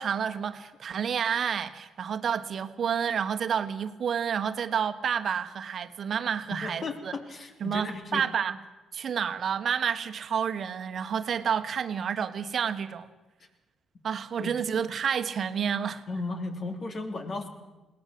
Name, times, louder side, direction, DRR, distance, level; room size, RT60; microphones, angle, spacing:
voice 1, 0.0-7.1 7.6-8.6 8.9-13.1 14.0-16.0, right 7 dB, 55° right, 1.4 m, -29 dB
voice 2, 6.5-8.2 14.4-14.5 16.1-17.5, left 3 dB, 45° left, 3.1 m, -35 dB
21.5 x 17.5 x 7.8 m
cardioid pair, 90°, 0 cm